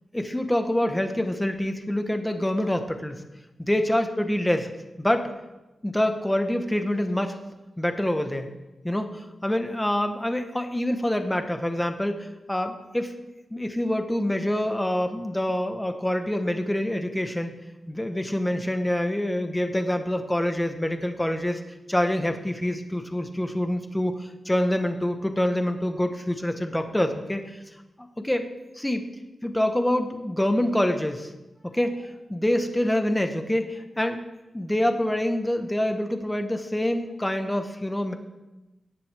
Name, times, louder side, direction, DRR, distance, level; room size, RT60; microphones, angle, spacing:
voice 1, 0.1-3.2 3.6-4.7 5.0-5.3 5.8-7.4 7.8-8.5 8.8-13.1 13.5-17.5 17.9-21.6 21.9-27.6 28.2-29.0 29.4-31.3 31.7-34.3 34.5-38.1, left 1 dB, 10° left, 6 dB, 1.3 m, -26 dB
18.0 x 10.5 x 3.6 m, 1.0 s
wide cardioid pair, 85°, 0 cm